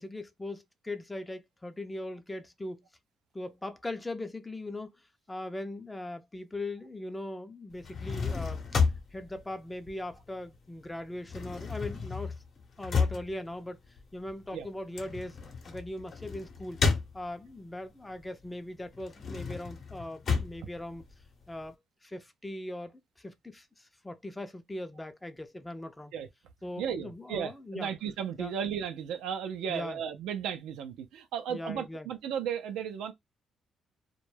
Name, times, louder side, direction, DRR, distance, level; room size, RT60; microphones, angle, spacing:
voice 1, 0.0-2.9 3.3-4.9 5.3-8.8 9.1-12.3 12.8-13.8 14.1-15.4 15.7-16.8 17.1-21.0 21.5-21.8 22.0-26.1 26.6-27.9 28.4-28.5 29.7-30.0 31.5-32.1, left 1 dB, 15° left, 0.4 m, -40 dB
sound 1, 7.7-10.6 10.8-17.7 18.1-21.7, left 5 dB, 55° left, 0.7 m, -33 dB
voice 2, 26.8-33.1, right 8 dB, 90° right, 0.4 m, -35 dB
2.2 x 2.1 x 3.1 m
cardioid pair, 90°, 0 cm